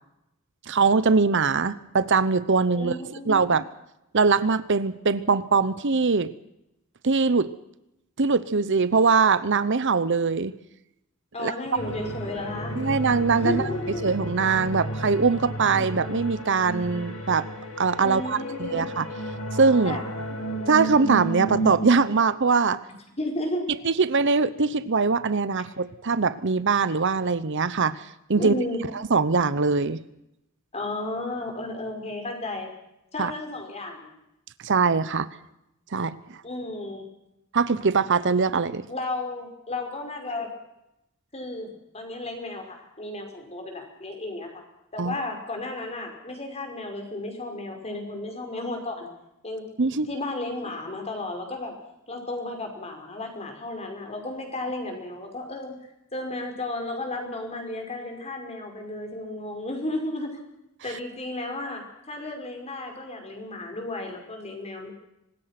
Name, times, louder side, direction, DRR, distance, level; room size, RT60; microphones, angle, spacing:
voice 1, 0.7-3.0 3.3-3.6 4.1-6.3 7.0-7.5 8.2-10.5 11.4-11.5 12.8-13.6 14.0-17.5 17.8-19.1 19.5-20.0 20.7-22.8 23.8-28.5 29.1-30.0 33.2-33.3 34.6-35.3 35.9-36.2 37.5-38.8 45.0-45.1 49.8-50.1, right 4 dB, 60° right, 15 dB, 0.9 m, -22 dB
voice 2, 2.7-3.5 11.3-12.8 13.4-14.0 18.0-18.9 19.8-20.0 22.9-23.6 28.4-28.8 30.7-32.7 33.1-34.1 36.4-37.1 38.9-40.5 41.3-44.6 44.9-49.1 49.4-51.7 52.1-55.7 56.1-60.3 60.8-64.9, left 2 dB, 30° left, 3 dB, 5.5 m, -33 dB
sound 1, 11.8-21.9, right 2 dB, 85° left, 6.3 m, -32 dB
25.0 x 20.0 x 6.0 m, 0.85 s
head